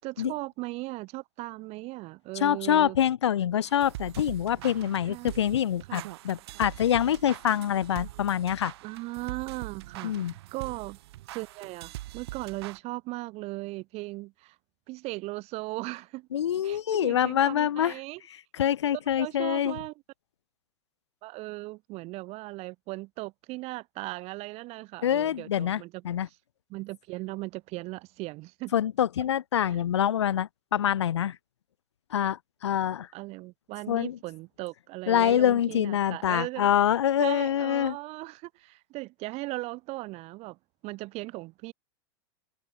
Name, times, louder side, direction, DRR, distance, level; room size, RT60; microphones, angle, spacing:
voice 1, 0.0-3.0 5.0-5.3 5.9-6.1 8.8-11.0 11.3-14.6 14.9-16.3 16.6-18.2 19.2-19.9 21.2-26.3 26.7-28.7 29.6-29.8 33.1-36.7 37.2-41.7, right 21 dB, 50° right, 6.7 m, -38 dB
voice 2, 2.3-8.7 10.0-10.3 16.3-17.9 18.5-19.8 25.0-26.3 28.7-31.4 32.1-33.1 33.9-34.2 35.1-38.0, left 10 dB, 85° left, 1.4 m, -25 dB
sound 1, 3.6-12.8, right 17 dB, 70° right, 6.4 m, -43 dB
hypercardioid pair, 110°, 14 cm